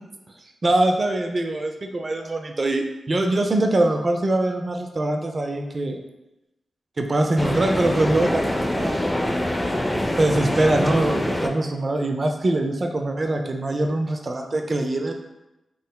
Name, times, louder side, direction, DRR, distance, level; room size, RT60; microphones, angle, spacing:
voice 1, 0.6-6.0 7.0-9.0 10.2-15.1, right 2 dB, 45° right, 4 dB, 0.4 m, -23 dB
sound 1, 7.4-11.5, left 1 dB, 20° left, 0.4 m, -24 dB
3.7 x 2.0 x 2.2 m, 0.95 s
supercardioid pair, 40°, 0 cm